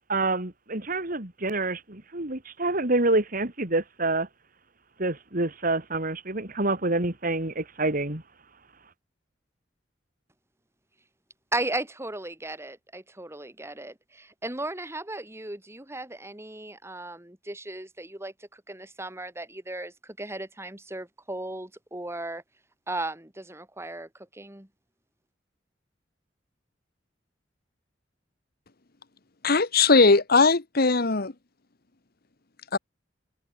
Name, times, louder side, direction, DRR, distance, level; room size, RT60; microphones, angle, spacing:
voice 1, 0.1-4.3 5.0-8.2, right 2 dB, 50° right, 3.0 m, -27 dB
voice 2, 11.5-22.4 22.9-24.7, right 2 dB, 15° right, 2.9 m, -36 dB
voice 3, 29.4-31.3 32.7-32.8, left 4 dB, 55° left, 1.3 m, -19 dB
head